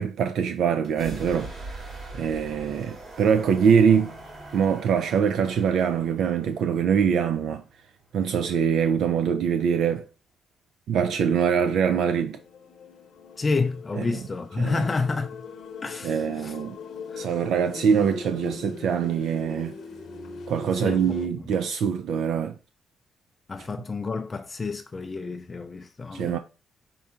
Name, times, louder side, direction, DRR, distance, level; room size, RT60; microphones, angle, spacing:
voice 1, 0.0-1.5 2.1-4.1 4.5-7.6 8.1-10.0 10.9-12.4 14.6-14.7 16.0-16.7 17.2-19.7 20.5-22.5 26.1-26.4, right 7 dB, 75° right, 0.3 m, -23 dB
sound 1, 0.8-8.5, right 2 dB, 55° right, 2.3 m, -42 dB
sound 2, 11.9-21.3, left 4 dB, 65° left, 0.9 m, -41 dB
voice 2, 13.4-15.5 15.8-16.6 17.1-17.3 20.7-21.5 23.5-26.4, left 4 dB, 30° left, 0.4 m, -30 dB
5.5 x 3.8 x 2.4 m
cardioid pair, 90°, 0 cm